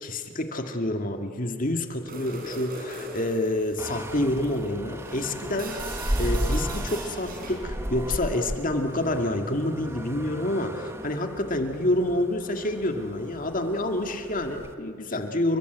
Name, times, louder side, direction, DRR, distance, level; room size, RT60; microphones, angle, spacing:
voice 1, 0.0-5.8 6.2-15.6, left 1 dB, 45° left, 4 dB, 2.0 m, -28 dB
sound 1, 2.1-7.7, right 2 dB, 50° right, 5.0 m, -40 dB
sound 2, 3.8-14.7, equal, 15° right, 1.1 m, -34 dB
29.0 x 24.0 x 8.1 m, 2.1 s
head